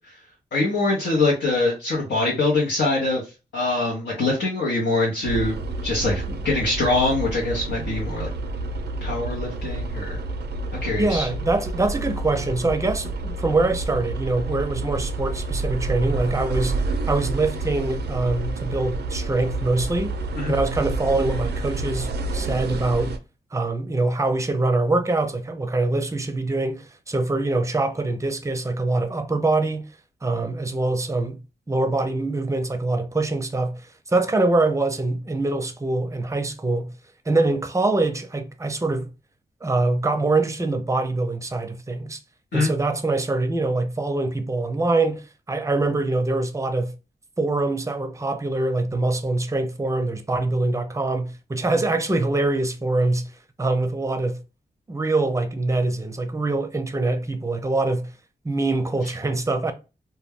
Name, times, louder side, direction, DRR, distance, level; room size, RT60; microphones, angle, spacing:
voice 1, 0.5-3.2 3.5-5.6 5.8-8.3 9.0-10.2 10.7-11.3 20.4-20.5 42.5-42.7, left 2 dB, 80° left, 0.8 m, -23 dB
sound 1, 5.2-23.2, right 2 dB, 70° right, 0.4 m, -29 dB
voice 2, 11.0-16.8 17.1-20.1 20.5-23.1 23.5-29.8 30.2-31.4 31.7-36.9 37.3-39.1 39.6-42.2 42.5-46.9 47.4-53.3 53.6-54.4 54.9-58.1 58.4-59.7, right 2 dB, 15° right, 0.5 m, -24 dB
2.2 x 2.1 x 3.4 m
cardioid pair, 50°, 18 cm